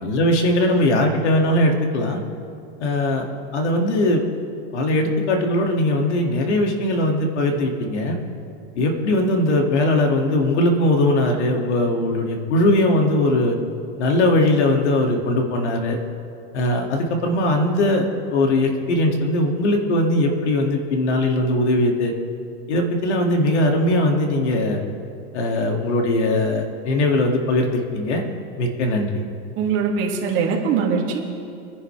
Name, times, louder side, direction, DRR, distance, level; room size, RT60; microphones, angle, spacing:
voice 1, 0.0-2.2 2.8-3.3 3.5-4.2 4.7-8.2 8.8-13.6 14.0-16.0 16.5-18.1 18.3-22.1 22.7-24.8 25.3-28.2 28.6-29.2, left 1 dB, 85° left, 2 dB, 2.6 m, -20 dB
voice 2, 29.6-31.4, right 6 dB, 35° right, -2 dB, 2.7 m, -22 dB
25.5 x 10.5 x 3.5 m, 2.5 s
supercardioid pair, 155°, 34 cm